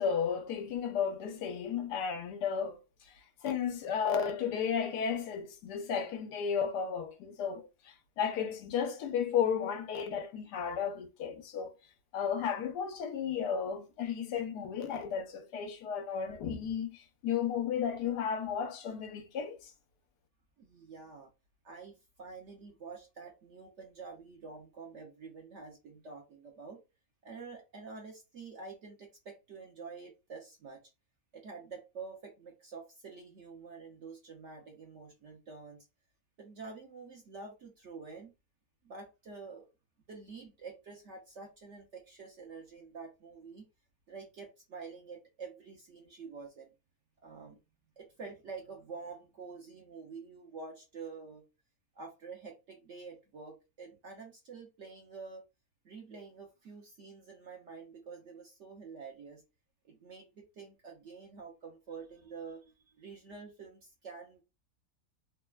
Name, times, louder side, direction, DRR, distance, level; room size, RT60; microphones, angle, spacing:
voice 1, 0.0-2.8 3.4-11.7 12.1-19.7, left 7 dB, 90° left, 1.2 m, -33 dB
voice 2, 20.6-21.3 21.6-26.8 27.2-30.8 31.3-35.9 36.4-38.3 38.8-39.7 40.1-43.7 44.1-46.7 47.2-47.6 48.0-51.4 51.9-55.4 55.8-59.4 59.8-64.4, right 4 dB, 65° right, 0.8 m, -48 dB
3.2 x 2.1 x 2.2 m
omnidirectional pair, 1.7 m